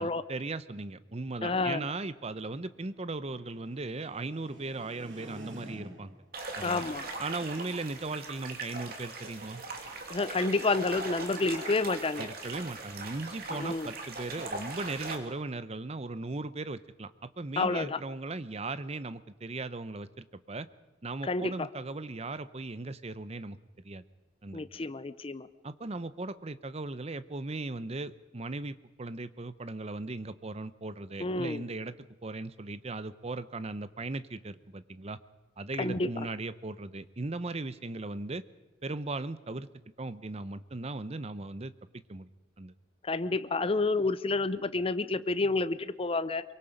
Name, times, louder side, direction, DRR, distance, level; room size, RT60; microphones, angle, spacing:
voice 1, 0.0-6.2 6.6-6.8 7.2-9.6 12.2-20.7 21.0-23.6 23.8-24.0 24.4-24.6 25.6-31.9 32.2-35.2 35.6-38.4 38.8-39.7 40.0-41.7 42.1-42.3 42.6-42.7, right 2 dB, 35° right, 14 dB, 0.8 m, -38 dB
sound 1, 1.0-6.3, right 1 dB, 75° right, 3.9 m, -50 dB
voice 2, 1.4-1.8 6.6-7.1 10.1-12.3 13.5-13.9 17.6-18.0 21.2-21.5 24.5-25.5 31.2-31.6 35.8-36.3 43.0-46.4, left 3 dB, 30° left, 14 dB, 0.6 m, -29 dB
sound 2, 6.3-15.2, right 3 dB, 55° right, 2.8 m, -40 dB
24.0 x 23.0 x 5.2 m, 1.1 s
head